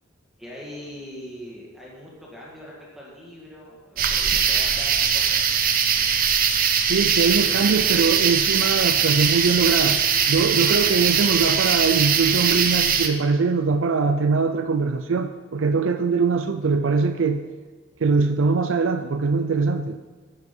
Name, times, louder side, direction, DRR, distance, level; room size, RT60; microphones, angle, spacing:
voice 1, 0.4-5.4, equal, ahead, -6 dB, 1.9 m, -41 dB
sound 1, 4.0-13.1, right 7 dB, 45° right, 0.8 m, -21 dB
voice 2, 6.9-17.4 18.0-20.0, right 4 dB, 75° right, 9 dB, 0.5 m, -22 dB
11.0 x 8.1 x 5.4 m, 1.4 s
head